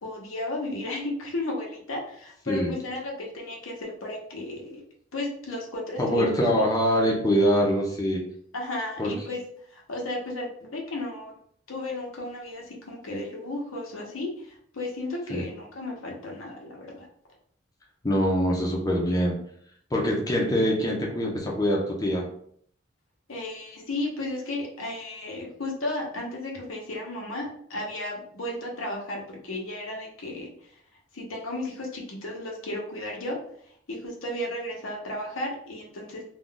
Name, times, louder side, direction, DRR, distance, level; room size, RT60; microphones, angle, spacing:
voice 1, 0.0-4.8 5.1-6.7 8.5-9.4 9.7-11.3 11.7-17.1 23.3-30.8 31.1-33.4 33.9-36.2, left 1 dB, 90° left, -1 dB, 0.8 m, -34 dB
voice 2, 6.0-8.2 9.0-9.1 15.3-15.4 18.0-19.4 19.9-22.3, equal, 20° left, -2 dB, 0.5 m, -24 dB
2.4 x 2.2 x 3.8 m, 0.64 s
head